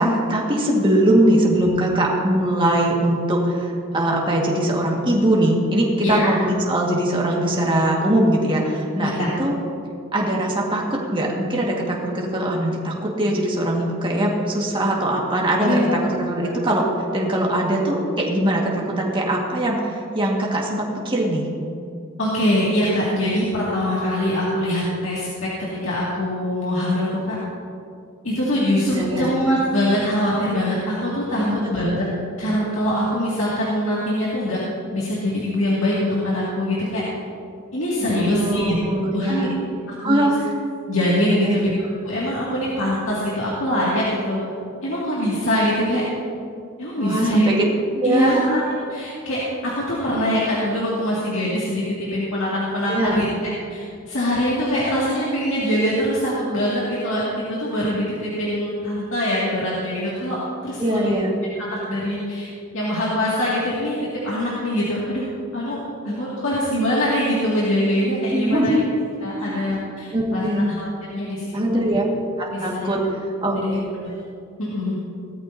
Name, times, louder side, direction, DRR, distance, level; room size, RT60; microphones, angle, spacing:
voice 1, 0.0-9.5 10.1-16.9 17.1-21.4 28.8-29.3 31.4-31.9 38.0-39.6 40.0-40.3 41.3-41.7 47.0-47.5 47.9-48.4 52.9-53.2 60.8-61.3 68.3-68.8 69.4-69.8 70.1-70.7 71.5-72.1 72.4-73.9, right 1 dB, 25° right, -2 dB, 1.8 m, -21 dB
voice 2, 6.0-6.3 9.0-9.3 15.6-16.0 16.4-16.5 22.2-27.4 28.2-32.1 32.4-34.6 34.9-37.0 37.7-38.8 39.1-40.3 40.9-44.4 44.8-46.0 46.8-47.6 48.0-48.6 48.9-57.2 57.5-61.1 61.6-65.3 65.5-68.7 69.2-71.9 72.5-73.0 73.5-74.1 74.6-75.0, equal, 60° left, -7 dB, 2.2 m, -23 dB
17.5 x 13.5 x 2.8 m, 2.4 s
head